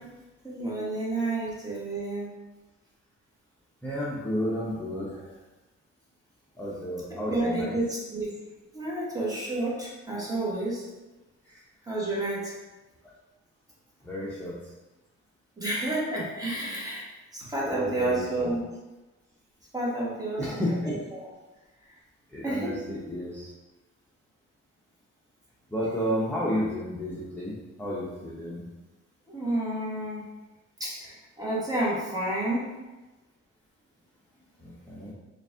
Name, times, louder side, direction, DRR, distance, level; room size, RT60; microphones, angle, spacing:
voice 1, 0.4-2.3 7.1-8.3 8.7-10.8 11.9-12.5 15.6-17.1 17.3-18.6 19.7-21.3 22.4-22.8 29.3-30.2 30.8-32.7, right 2 dB, 10° right, -6 dB, 1.4 m, -30 dB
voice 2, 3.8-5.2 6.6-7.7 14.0-14.6 17.6-18.5 20.4-20.9 22.3-23.5 25.7-27.5 27.8-28.6 34.6-35.1, equal, 5° left, -7 dB, 0.7 m, -31 dB
4.0 x 2.5 x 3.5 m, 1.1 s
cardioid pair, 90°, 30 cm